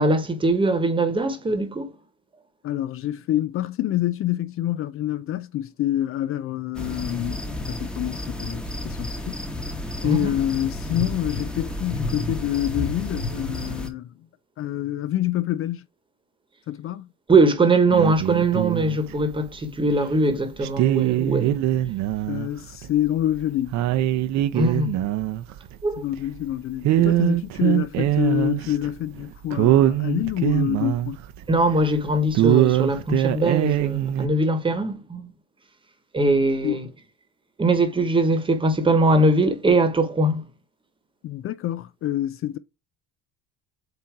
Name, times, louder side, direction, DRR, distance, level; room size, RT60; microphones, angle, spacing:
voice 1, 0.0-1.9 10.0-10.4 17.3-21.6 24.5-25.0 25.8-26.0 31.5-35.3 36.1-36.9 37.6-40.4, right 2 dB, 15° right, 1.3 m, -21 dB
voice 2, 2.6-9.8 10.0-14.1 14.6-15.8 16.7-17.1 22.3-23.8 26.0-31.2 36.6-36.7 41.2-42.6, left 13 dB, 45° left, 0.5 m, -27 dB
sound 1, 6.7-13.9, left 1 dB, 5° left, 1.1 m, -31 dB
sound 2, 17.9-19.5 19.9-20.0 20.6-22.5 22.7-22.9 23.3-23.4 23.7-26.5 26.8-28.9 29.2-29.3 29.5-31.9 32.3-34.3, right 13 dB, 65° right, 0.8 m, -22 dB
8.1 x 2.8 x 4.7 m
cardioid pair, 140°, 30 cm